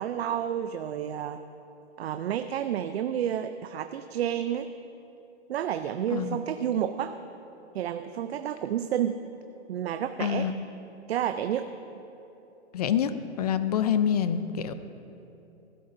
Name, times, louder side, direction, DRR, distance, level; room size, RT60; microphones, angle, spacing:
voice 1, 0.0-1.4 2.0-4.7 5.5-7.2 7.7-9.2 9.7-10.5 11.1-11.7, right 10 dB, 65° right, 9 dB, 0.5 m, -30 dB
voice 2, 10.2-10.5 12.7-13.1 13.4-14.7, left 9 dB, 35° left, 11 dB, 0.4 m, -26 dB
15.5 x 12.0 x 2.6 m, 3.0 s
hypercardioid pair, 160°, 35 cm